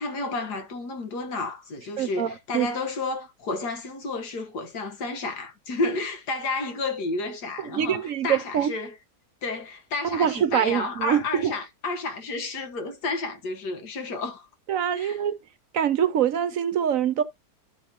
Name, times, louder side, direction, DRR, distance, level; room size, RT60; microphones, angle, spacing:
voice 1, 0.0-8.9 9.4-14.5 14.9-15.2, left 3 dB, 80° left, 1.9 m, -31 dB
voice 2, 2.0-2.7 7.7-8.7 10.1-11.5 14.7-15.4 15.7-17.2, right 9 dB, 65° right, 1.0 m, -24 dB
12.0 x 5.2 x 2.9 m
omnidirectional pair, 1.7 m